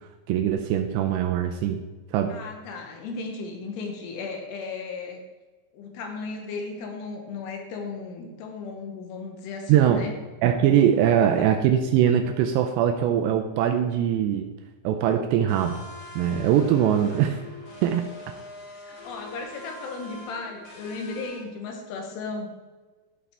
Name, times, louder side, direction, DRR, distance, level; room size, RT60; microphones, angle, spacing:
voice 1, 0.3-1.8 2.1-2.4 9.7-10.0 10.4-14.5 14.8-15.8 16.2-17.4 17.8-18.1, right 9 dB, 85° right, 5 dB, 2.7 m, -22 dB
voice 2, 2.3-5.2 5.7-10.1 11.0-11.5 18.7-22.5, left 4 dB, 80° left, 2 dB, 3.0 m, -36 dB
sound 1, 15.5-21.4, left 2 dB, 50° left, 2.0 m, -43 dB
13.5 x 4.9 x 3.4 m, 1.3 s
omnidirectional pair, 5.1 m